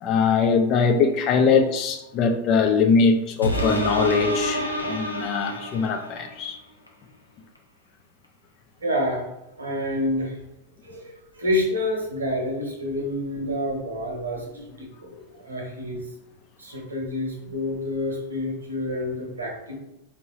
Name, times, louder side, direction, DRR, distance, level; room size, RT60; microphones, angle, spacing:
voice 1, 0.0-6.6, left 5 dB, 35° left, 6 dB, 0.4 m, -21 dB
Cringe Scare, 3.4-6.3 6.9-7.0, equal, 85° left, 0.5 m, -27 dB
voice 2, 8.8-9.2 9.6-10.4 10.8-16.0 16.6-19.8, left 1 dB, 75° right, 0 dB, 1.0 m, -28 dB
4.6 x 2.7 x 2.7 m, 0.89 s
figure-of-eight pair, 90°, 0 cm